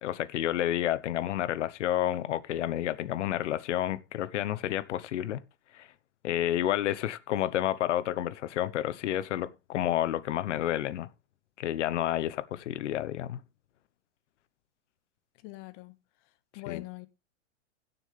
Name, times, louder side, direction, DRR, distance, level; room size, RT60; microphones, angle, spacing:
voice 1, 0.0-5.4 5.7-5.9 6.2-11.1 11.6-13.4 16.7-16.8, left 12 dB, 75° left, 1.1 m, -30 dB
voice 2, 15.4-15.9 16.5-17.1, left 21 dB, 50° left, 1.6 m, -42 dB
16.5 x 7.1 x 3.3 m
hypercardioid pair, 115°, 36 cm